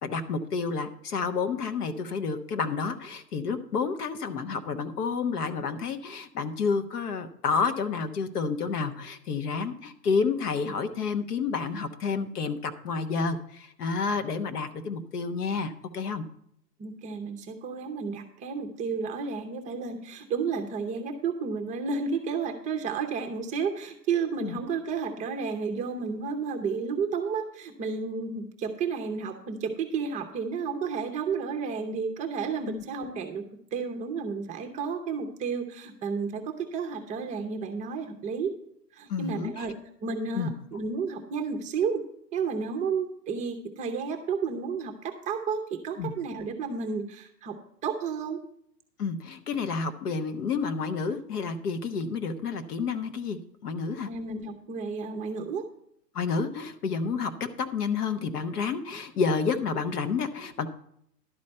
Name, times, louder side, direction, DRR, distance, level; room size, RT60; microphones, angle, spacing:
voice 1, 0.0-16.2 24.4-24.6 32.7-32.8 39.1-39.7 40.3-40.5 46.0-46.1 49.0-54.1 56.1-60.7, left 5 dB, 65° left, 8 dB, 1.3 m, -30 dB
voice 2, 16.8-33.4 33.7-38.5 38.9-39.7 40.0-42.0 42.3-47.6 47.8-48.4 54.1-55.6, right 5 dB, 15° right, 5 dB, 0.7 m, -32 dB
11.5 x 4.3 x 7.6 m, 0.70 s
hypercardioid pair, 125°, 49 cm